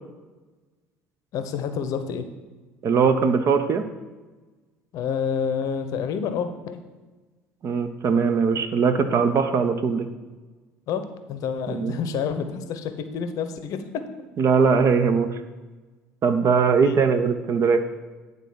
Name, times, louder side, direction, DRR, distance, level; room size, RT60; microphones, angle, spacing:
voice 1, 1.3-2.3 4.9-6.8 10.9-14.1 16.8-17.1, left 6 dB, 55° left, 9 dB, 0.7 m, -28 dB
voice 2, 2.8-3.9 7.6-10.1 11.7-11.9 14.4-15.3 16.2-17.8, right 5 dB, 40° right, 9 dB, 0.7 m, -20 dB
9.1 x 4.0 x 6.2 m, 1.2 s
figure-of-eight pair, 60°, 7 cm